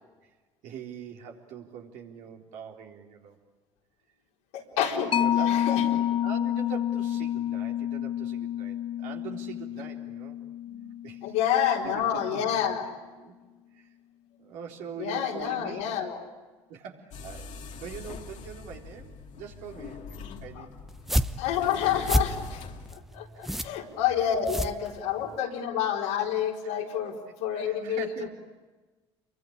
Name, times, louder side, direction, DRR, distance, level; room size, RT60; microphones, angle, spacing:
voice 1, 0.6-3.4 5.2-5.8 6.2-10.4 11.0-11.3 11.8-12.5 13.2-13.3 13.7-13.9 14.4-15.9 16.7-20.7 21.1-21.4 23.3-23.6 24.2-24.3 27.6-28.3, right 7 dB, 65° right, 0 dB, 3.8 m, -43 dB
voice 2, 4.5-6.0 10.7-10.9 11.2-12.9 15.0-16.2 20.6-20.7 21.4-22.6 22.9-28.3, left 9 dB, 75° left, -1 dB, 4.3 m, -29 dB
Mallet percussion, 5.1-12.2, left 10 dB, 40° left, 0.9 m, -29 dB
sound 1, 17.1-23.0, left 5 dB, 55° left, 2.7 m, -42 dB
sound 2, 20.9-25.4, equal, ahead, 1.1 m, -30 dB
28.5 x 23.5 x 8.8 m, 1.3 s
hypercardioid pair, 60°, 14 cm